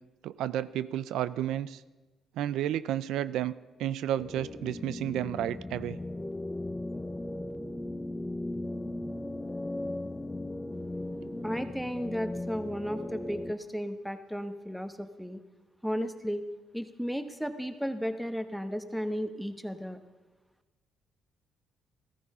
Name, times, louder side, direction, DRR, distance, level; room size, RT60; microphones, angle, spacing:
voice 1, 0.2-1.8 2.4-3.5 3.8-6.0, right 11 dB, 85° right, 16 dB, 0.4 m, -31 dB
sound 1, 4.2-13.5, left 1 dB, 15° left, 0.8 m, -37 dB
voice 2, 11.4-15.4 15.8-16.4 16.7-20.0, equal, ahead, 9 dB, 1.1 m, -34 dB
15.0 x 14.0 x 5.5 m, 1.2 s
cardioid pair, 90°, 0 cm